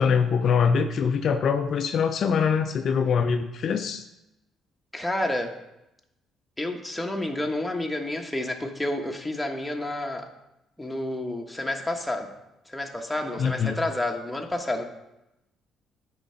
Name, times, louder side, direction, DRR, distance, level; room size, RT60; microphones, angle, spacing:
voice 1, 0.0-4.0 13.4-13.8, left 6 dB, 60° left, 6 dB, 0.5 m, -23 dB
voice 2, 4.9-5.6 6.6-10.3 10.8-12.3 12.7-14.8, left 1 dB, 10° left, 2 dB, 1.3 m, -30 dB
8.9 x 3.8 x 5.7 m, 0.90 s
supercardioid pair, 70°, 0 cm